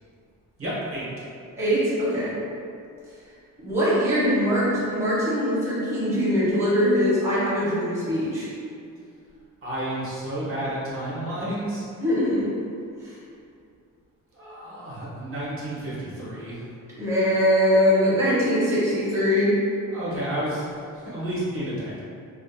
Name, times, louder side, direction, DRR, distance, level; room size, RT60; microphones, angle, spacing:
voice 1, 0.6-1.1 9.6-11.8 14.3-16.7 19.9-22.0, right 1 dB, 40° right, -8 dB, 0.7 m, -31 dB
voice 2, 1.6-2.4 3.6-8.5 12.0-12.5 13.0-13.1 17.0-19.6, equal, 10° right, -10 dB, 0.6 m, -22 dB
2.4 x 2.2 x 2.5 m, 2.4 s
cardioid pair, 120°, 33 cm